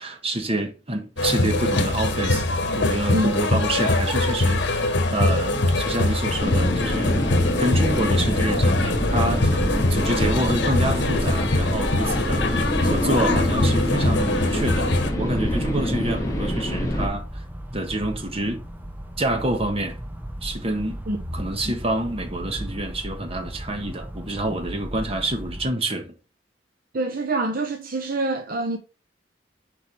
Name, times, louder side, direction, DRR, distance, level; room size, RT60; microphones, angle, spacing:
voice 1, 0.0-2.5 2.7-7.3 7.6-14.9 15.2-17.4 17.7-18.6 19.2-20.0 20.4-21.0 21.3-26.1, right 1 dB, 35° right, 1.5 m, -27 dB
sound 1, 1.2-15.1, left 2 dB, 85° left, 1.4 m, -23 dB
sound 2, 6.4-17.1, left 1 dB, 20° left, 1.2 m, -26 dB
sound 3, 8.5-25.7, right 1 dB, 10° right, 0.8 m, -34 dB
voice 2, 26.9-28.8, right 2 dB, 50° right, 0.8 m, -25 dB
6.9 x 4.7 x 3.3 m
head